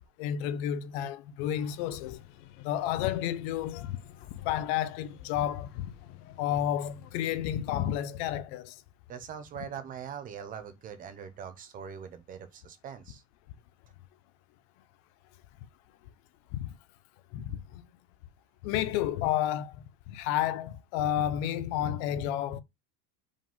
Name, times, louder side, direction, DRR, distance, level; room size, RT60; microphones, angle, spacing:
voice 1, 0.2-2.2 2.6-4.0 4.4-5.9 6.4-8.8 16.5-16.7 17.3-17.8 18.6-19.8 20.1-22.6, left 11 dB, 45° left, 0.7 m, -31 dB
sound 1, 1.4-8.1, left 12 dB, 75° left, 1.4 m, -52 dB
voice 2, 9.1-13.2, right 8 dB, 20° right, 0.5 m, -42 dB
5.1 x 3.8 x 5.2 m
supercardioid pair, 175°, 46 cm